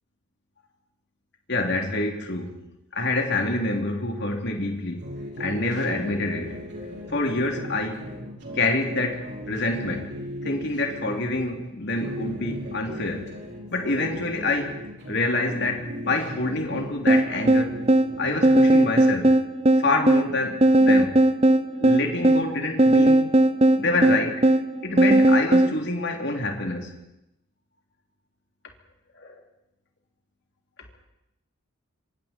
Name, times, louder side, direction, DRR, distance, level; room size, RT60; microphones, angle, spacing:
voice 1, 1.5-2.5 2.9-5.1 5.4-6.6 7.1-8.1 8.5-10.1 10.4-13.3 13.7-14.7 15.1-17.8 18.2-19.3 19.8-21.2 21.8-23.3 23.8-24.4 24.8-26.9 29.2-29.3, left 2 dB, 55° left, 2 dB, 3.3 m, -27 dB
sound 1, 5.0-11.5 11.9-15.2 15.5-18.6, left 1 dB, 50° right, 5.3 m, -37 dB
sound 2, 17.1-25.8, right 1 dB, 30° right, 0.7 m, -18 dB
27.0 x 25.0 x 4.5 m, 0.86 s
head